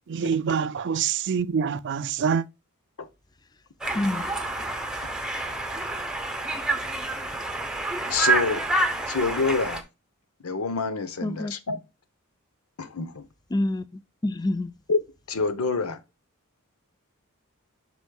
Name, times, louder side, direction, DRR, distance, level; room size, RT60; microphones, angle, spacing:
voice 1, 0.1-2.5, right 6 dB, 55° right, 0.4 m, -25 dB
Conversation, 3.8-9.8, right 2 dB, 5° right, 0.9 m, -28 dB
voice 2, 3.9-4.3 11.2-11.5 13.5-14.7, left 1 dB, 20° left, 0.4 m, -27 dB
voice 3, 8.1-8.7 9.1-9.8 10.4-11.8 12.8-13.2 14.9-15.0 15.3-16.0, left 4 dB, 80° left, 1.0 m, -27 dB
8.1 x 6.2 x 2.3 m
head